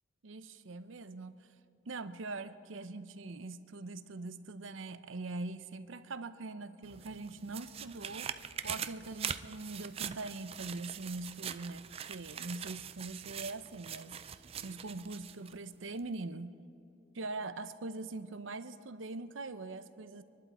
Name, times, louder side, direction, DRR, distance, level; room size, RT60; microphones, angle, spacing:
voice 1, 0.2-1.3 1.9-8.3 8.6-16.6 17.1-20.2, right 3 dB, 80° right, 12 dB, 0.7 m, -42 dB
sound 1, 6.8-15.6 16.0-16.1, right 8 dB, 30° right, 0.4 m, -43 dB
25.0 x 11.5 x 4.3 m, 2.7 s
head